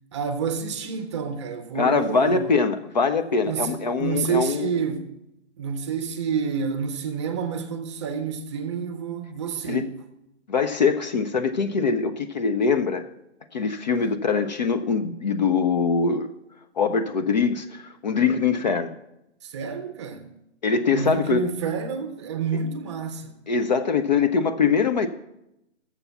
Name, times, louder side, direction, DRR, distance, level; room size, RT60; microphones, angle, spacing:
voice 1, 0.1-2.5 3.4-5.1 5.6-9.9 13.9-14.2 19.4-20.3 20.9-23.4, right 6 dB, 25° right, 0.6 m, -29 dB
voice 2, 1.7-4.7 9.7-9.8 10.5-13.1 13.5-16.3 16.8-18.9 20.6-21.4 23.5-25.1, left 5 dB, 40° left, 0.4 m, -23 dB
7.1 x 6.7 x 7.1 m
hypercardioid pair, 150°, 35 cm